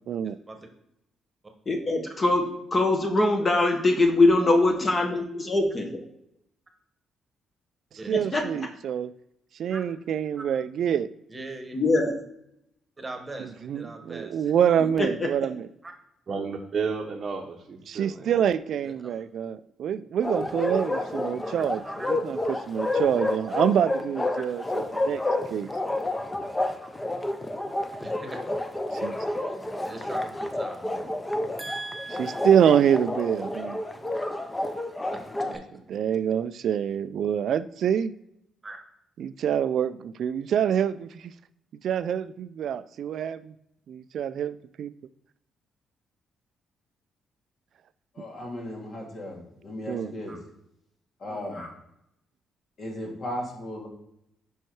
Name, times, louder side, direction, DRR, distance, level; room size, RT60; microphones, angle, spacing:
voice 1, 1.7-2.4 2.7-6.0 8.1-8.4 11.7-12.1 15.0-15.3, left 2 dB, 30° left, 4 dB, 1.2 m, -22 dB
voice 2, 8.1-9.1 9.6-11.1 13.6-15.7 17.9-21.8 22.1-25.2 25.5-25.7 29.0-29.2 32.2-33.8 35.9-38.1 39.2-41.2 41.8-43.5 43.9-44.9 49.9-50.1, right 9 dB, 65° right, 14 dB, 0.3 m, -26 dB
voice 3, 11.3-11.8 13.0-14.5 15.8-15.9 18.8-19.2 21.5-22.1 24.3-24.4 26.8-26.9 28.0-28.4 29.1-29.4 29.8-31.2 31.6-32.5 35.5-35.6 38.6-38.8 50.3-50.4, right 2 dB, 20° right, 5 dB, 1.2 m, -40 dB
voice 4, 16.3-18.3, right 5 dB, 45° right, 0 dB, 0.7 m, -32 dB
Bark, 20.2-35.6, left 1 dB, 15° left, 0.6 m, -30 dB
voice 5, 48.2-50.4 51.2-51.7 52.8-53.9, left 1 dB, 55° left, -1 dB, 2.2 m, -36 dB
5.4 x 4.5 x 4.6 m, 0.79 s
cardioid pair, 90°, 0 cm